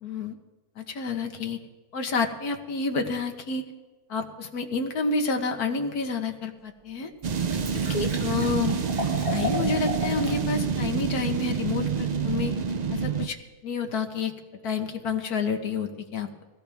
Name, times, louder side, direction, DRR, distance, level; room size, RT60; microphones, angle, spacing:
voice 1, 0.0-0.4 0.8-1.6 1.9-3.6 4.1-7.1 7.7-8.8 9.3-12.5 12.9-13.4 13.6-14.3 14.6-16.3, left 4 dB, 70° left, 5 dB, 1.7 m, -29 dB
Liquid, 6.3-6.4 6.9-7.0 7.2-10.4 10.8-10.9, left 2 dB, 60° right, 2.9 m, -34 dB
sound 1, 7.2-13.3, right 6 dB, 80° right, 0.3 m, -27 dB
22.5 x 16.5 x 3.5 m, 1.2 s
omnidirectional pair, 1.7 m